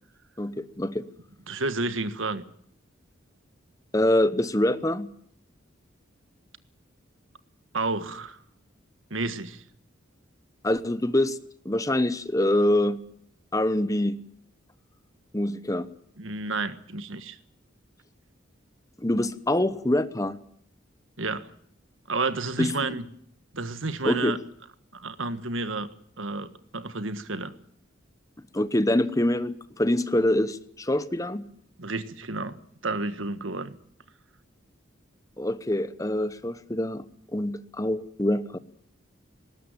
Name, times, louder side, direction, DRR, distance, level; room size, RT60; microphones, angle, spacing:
voice 1, 0.4-1.0 3.9-5.1 10.6-11.4 11.6-13.0 13.5-14.2 15.3-15.9 19.0-20.4 22.6-23.0 24.0-24.3 28.5-31.5 35.4-37.0 37.3-38.6, left 1 dB, 15° left, 13 dB, 1.0 m, -25 dB
voice 2, 1.5-2.4 7.7-8.4 9.1-9.6 16.2-17.4 21.2-21.5 22.1-23.0 23.5-24.4 24.9-25.9 26.2-27.5 31.8-33.7, right 3 dB, 80° right, 11 dB, 1.6 m, -31 dB
20.0 x 18.0 x 9.0 m, 0.66 s
head